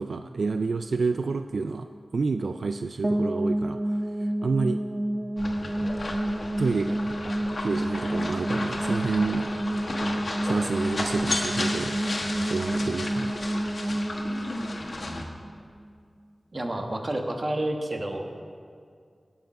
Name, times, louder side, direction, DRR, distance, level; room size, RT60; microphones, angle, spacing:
voice 1, 0.0-4.8 6.6-7.0 7.6-9.5 10.4-12.0 12.4-13.4, right 4 dB, 80° right, 8 dB, 0.3 m, -29 dB
sound 1, 3.0-15.9, right 1 dB, 25° right, 0.6 m, -29 dB
sound 2, 5.4-15.2, left 2 dB, 60° left, 1.4 m, -34 dB
voice 2, 16.5-18.3, right 1 dB, 40° right, 3 dB, 1.3 m, -29 dB
17.5 x 7.0 x 5.5 m, 2.2 s
wide cardioid pair, 70°, 0 cm